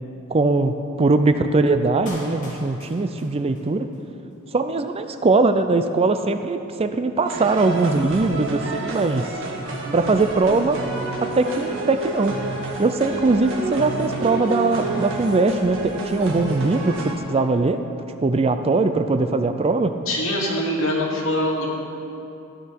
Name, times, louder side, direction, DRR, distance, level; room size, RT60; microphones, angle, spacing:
voice 1, 0.3-3.9 4.5-9.3 9.9-10.8 11.2-12.4 12.8-17.8 18.2-19.9, right 3 dB, 25° right, 9 dB, 0.4 m, -21 dB
Clapping, 2.1-4.0 4.3-4.4, left 1 dB, 35° left, 2.5 m, -41 dB
sound 1, 7.3-17.2, right 2 dB, 60° right, 1.6 m, -29 dB
voice 2, 20.1-21.7, left 1 dB, 65° left, -3 dB, 2.4 m, -23 dB
14.5 x 10.5 x 4.6 m, 2.8 s
head